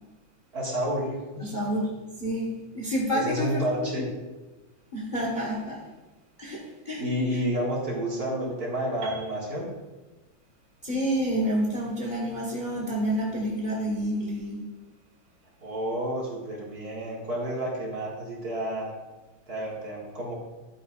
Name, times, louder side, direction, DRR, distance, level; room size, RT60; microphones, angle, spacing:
voice 1, 0.5-1.7 3.1-4.0 7.0-9.7 15.6-18.9 19.5-20.3, equal, 50° right, -4 dB, 2.5 m, -30 dB
voice 2, 1.5-1.9 2.2-4.1 4.9-5.8 6.4-7.1 10.8-14.6, equal, 25° left, -2 dB, 1.3 m, -29 dB
Piano, 9.0-12.9, right 3 dB, 65° right, 2.3 m, -47 dB
11.5 x 8.9 x 2.5 m, 1.2 s
omnidirectional pair, 2.2 m